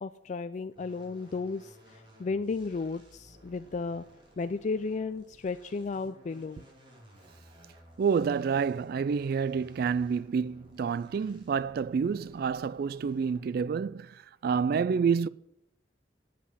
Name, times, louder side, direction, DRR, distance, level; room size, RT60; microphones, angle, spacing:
voice 1, 0.0-4.0 4.4-6.6, left 4 dB, 40° left, 0.4 m, -34 dB
sound 1, 0.8-13.7, equal, 30° right, 3.3 m, -57 dB
voice 2, 8.0-15.3, right 6 dB, 55° right, 0.3 m, -28 dB
8.3 x 7.5 x 8.4 m
head